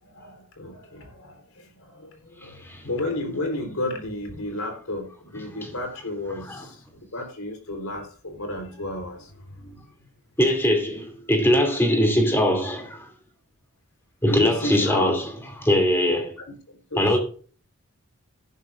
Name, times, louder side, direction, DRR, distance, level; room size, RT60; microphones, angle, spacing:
voice 1, 0.0-9.9 14.3-15.2 16.4-17.2, left 2 dB, 80° left, 4.0 m, -33 dB
voice 2, 10.4-13.1 14.2-15.2 15.6-16.3 17.0-17.2, equal, 10° left, 2.8 m, -21 dB
14.0 x 11.5 x 2.6 m
head